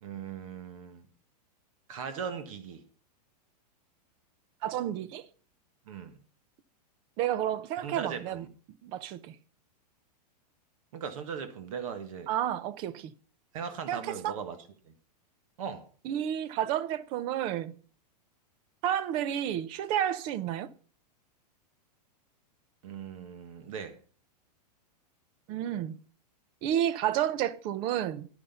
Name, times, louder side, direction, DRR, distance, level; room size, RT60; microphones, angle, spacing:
voice 1, 0.0-1.1 1.9-2.8 5.9-6.2 7.8-8.5 10.9-12.3 13.5-14.9 15.6-15.9 22.8-23.9, right 7 dB, 55° right, 1.5 m, -39 dB
voice 2, 4.6-5.3 7.2-8.4 8.8-9.4 12.3-13.1 13.9-14.3 16.0-17.7 18.8-20.7 25.5-26.0 26.6-28.3, right 11 dB, 25° right, 0.5 m, -31 dB
11.0 x 9.9 x 5.5 m
supercardioid pair, 170°, 21 cm